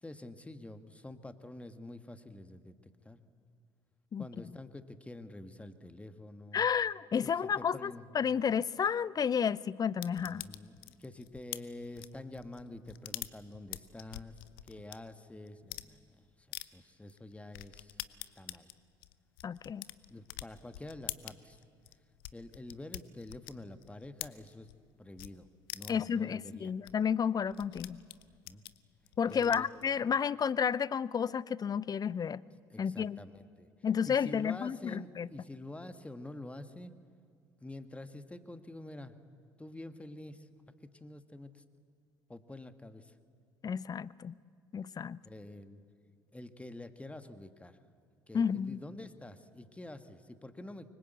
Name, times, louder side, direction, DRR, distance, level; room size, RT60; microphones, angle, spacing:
voice 1, 0.0-3.2 4.1-6.6 7.2-8.1 10.2-18.0 18.4-18.7 20.1-21.6 22.3-24.7 25.0-25.5 25.7-26.8 28.2-28.6 29.3-29.7 32.7-33.7 34.0-36.9 37.6-39.2 39.6-40.5 40.8-41.6 42.3-43.1 45.2-45.8 46.3-47.8 48.3-50.9, left 1 dB, 10° left, 9 dB, 1.5 m, -47 dB
voice 2, 6.5-10.4 19.4-19.8 25.9-28.0 29.2-32.4 32.8-33.2 33.8-35.3 43.6-44.4 44.7-45.2 48.3-48.8, left 7 dB, 30° left, 21 dB, 0.6 m, -31 dB
sound 1, 10.0-15.0 15.5-15.9 16.5-16.7 17.1-17.2 17.5-24.8 25.2-25.3 25.7-26.1 26.5-26.6 26.8-26.9 27.2-29.8, left 16 dB, 70° left, 0.7 m, -45 dB
24.5 x 23.5 x 8.1 m, 2.2 s
figure-of-eight pair, 55°, 12 cm